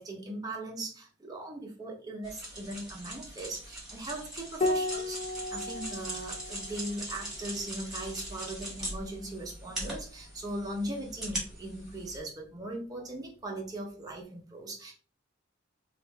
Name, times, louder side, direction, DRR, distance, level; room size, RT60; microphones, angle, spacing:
voice 1, 0.0-5.2 5.5-14.9, right 1 dB, 20° right, -1 dB, 0.9 m, -39 dB
sound 1, 2.2-12.2, right 1 dB, 5° right, 1.4 m, -41 dB
Piano, 4.6-9.5 11.1-11.9, left 2 dB, 30° left, 0.4 m, -37 dB
3.1 x 2.6 x 3.4 m, 0.38 s
head